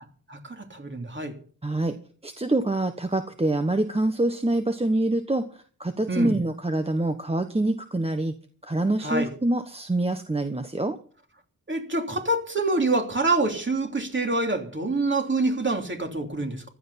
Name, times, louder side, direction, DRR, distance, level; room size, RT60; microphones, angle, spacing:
voice 1, 0.3-1.3 6.1-6.4 9.0-9.3 11.7-16.6, right 2 dB, 35° right, 3 dB, 3.2 m, -26 dB
voice 2, 1.6-1.9 2.2-8.3 8.6-11.0, right 2 dB, 15° right, 8 dB, 1.1 m, -25 dB
15.5 x 12.0 x 5.7 m, 0.43 s
wide cardioid pair, 95°, 34 cm